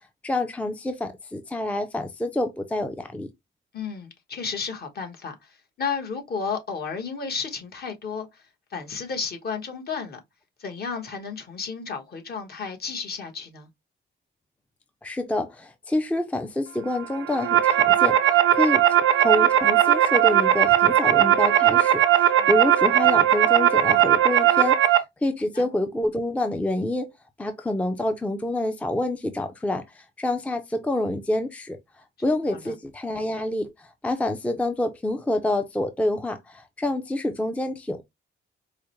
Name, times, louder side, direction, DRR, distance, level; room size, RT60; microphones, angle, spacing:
voice 1, 0.2-3.3 15.0-27.1 27.4-31.8 32.2-38.0, left 1 dB, 5° left, 0.4 m, -27 dB
voice 2, 3.7-8.3 8.7-10.2 10.6-13.7 22.4-22.5 25.5-25.7 32.5-32.7, left 5 dB, 50° left, 1.2 m, -32 dB
sound 1, 17.1-25.0, right 11 dB, 90° right, 0.6 m, -18 dB
4.7 x 2.1 x 3.0 m
cardioid pair, 120°, 20 cm